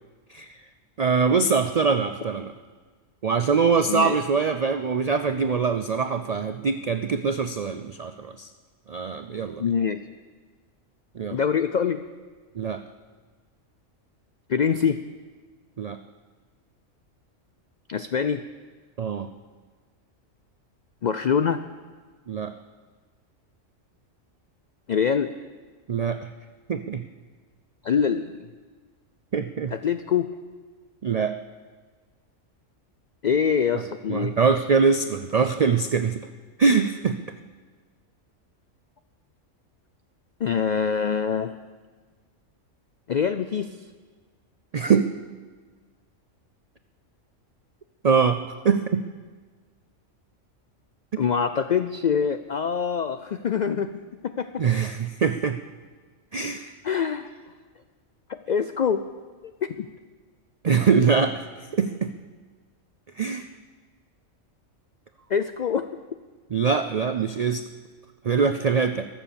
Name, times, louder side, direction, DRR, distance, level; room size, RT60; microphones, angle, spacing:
voice 1, 1.0-2.5 3.2-8.5 8.9-9.6 11.1-11.4 12.5-12.8 15.8-16.0 19.0-19.3 22.3-22.5 25.9-26.3 26.7-27.0 29.3-29.7 31.0-31.3 34.1-36.3 36.6-37.2 44.7-45.1 48.0-49.0 54.6-55.6 56.3-56.7 60.6-61.4 61.7-62.1 63.2-63.5 66.5-67.6 68.2-69.1, right 5 dB, 85° right, 9 dB, 0.3 m, -23 dB
voice 2, 3.9-4.2 9.6-10.0 11.3-12.0 14.5-15.0 17.9-18.4 21.0-21.6 24.9-25.3 27.8-28.4 29.7-30.3 33.2-34.4 40.4-41.6 43.1-43.7 51.2-53.9 54.2-54.6 56.8-57.3 58.3-59.0 59.6-59.9 65.3-65.9, left 7 dB, 85° left, 10 dB, 0.4 m, -24 dB
22.0 x 7.4 x 7.0 m, 1.5 s
omnidirectional pair, 1.4 m